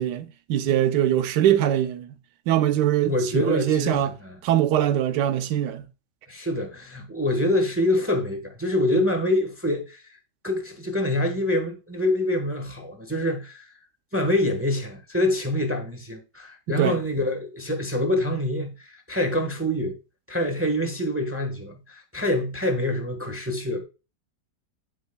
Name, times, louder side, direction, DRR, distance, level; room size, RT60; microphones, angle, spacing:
voice 1, 0.0-2.1 2.5-4.1 4.4-5.9 16.7-17.0, right 11 dB, 80° right, 1.3 m, -22 dB
voice 2, 3.0-4.4 6.3-10.2 10.4-13.7 14.1-20.0 20.3-23.8, left 1 dB, 10° right, 0.9 m, -26 dB
9.1 x 8.1 x 2.2 m
omnidirectional pair, 1.8 m